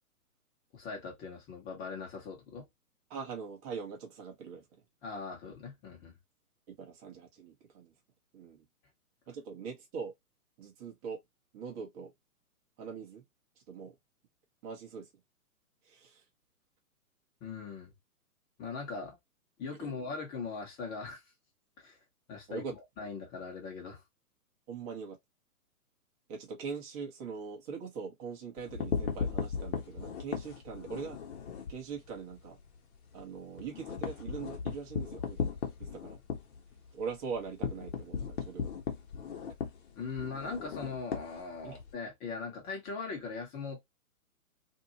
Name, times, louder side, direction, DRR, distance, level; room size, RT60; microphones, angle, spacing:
voice 1, 0.7-2.7 5.0-6.1 17.4-17.9 18.6-19.2 19.6-21.2 21.8-22.0 22.3-22.7 23.0-24.0 39.9-43.8, left 4 dB, 20° left, 1.2 m, -40 dB
voice 2, 3.1-4.6 6.7-7.9 8.3-8.6 9.3-10.1 10.6-11.2 11.5-12.1 12.8-13.2 13.7-13.9 14.6-15.1 15.9-16.2 19.8-20.0 22.5-22.7 24.7-25.2 26.3-31.2 31.7-32.6 33.1-36.2 36.9-38.7 41.6-41.8, right 5 dB, 25° right, 1.0 m, -42 dB
sound 1, 28.6-31.8 32.2-32.3 32.6-32.7 33.1-41.9, left 6 dB, 45° left, 1.1 m, -37 dB
2.7 x 2.5 x 2.9 m
figure-of-eight pair, 130°, 45 cm